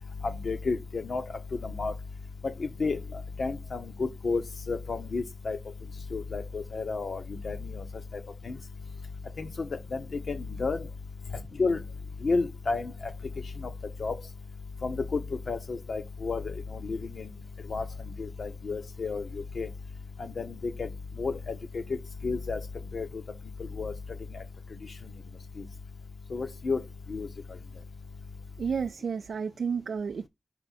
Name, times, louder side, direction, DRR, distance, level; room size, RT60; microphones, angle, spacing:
voice 1, 0.2-1.2 1.6-1.9 2.8-3.0 3.4-3.8 4.2-4.4 4.7-5.6 6.1-7.6 9.4-9.5 10.3-10.8 11.6-11.8 12.2-12.9 14.0-14.1 14.8-15.2 15.5-16.4 16.8-17.0 17.7-17.8 18.2-19.2 19.6-19.7 20.4-20.5 21.2-21.3 22.2-22.6 22.9-23.1 23.8-23.9 26.3-26.8 27.1-27.3, left 4 dB, 60° left, 0.9 m, -30 dB
voice 2, 28.6-30.3, right 6 dB, 85° right, 0.3 m, -31 dB
5.5 x 4.3 x 4.2 m
wide cardioid pair, 130°, 0 cm